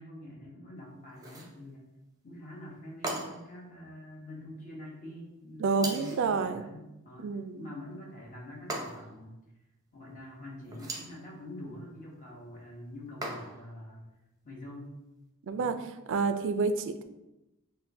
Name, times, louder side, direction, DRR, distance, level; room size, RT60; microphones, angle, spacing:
voice 1, 0.0-1.9 2.2-9.4 9.9-14.1 14.4-15.0 15.5-15.8, left 1 dB, 35° left, -3 dB, 1.1 m, -46 dB
sound 1, 1.1-1.6 3.0-3.6 5.8-6.3 8.7-9.2 10.7-11.2 13.2-13.7, right 2 dB, 15° right, 0.7 m, -38 dB
voice 2, 5.6-6.6 7.2-7.7 15.4-15.8 16.1-17.0, right 4 dB, 60° right, 9 dB, 0.3 m, -29 dB
6.5 x 2.2 x 2.6 m, 0.93 s
head